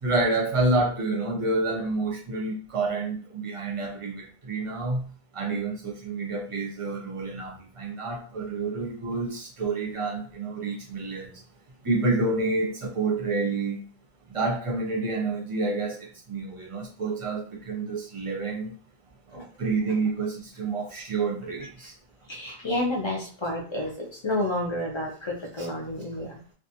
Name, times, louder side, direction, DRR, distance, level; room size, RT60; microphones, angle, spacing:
voice 1, 0.0-5.1 5.3-11.4 11.8-13.8 14.3-18.7 19.3-21.9 25.6-25.7, right 3 dB, 35° right, -1 dB, 0.6 m, -28 dB
voice 2, 22.3-26.4, left 1 dB, 35° left, 0 dB, 0.5 m, -30 dB
2.5 x 2.3 x 2.8 m, 0.41 s
omnidirectional pair, 1.1 m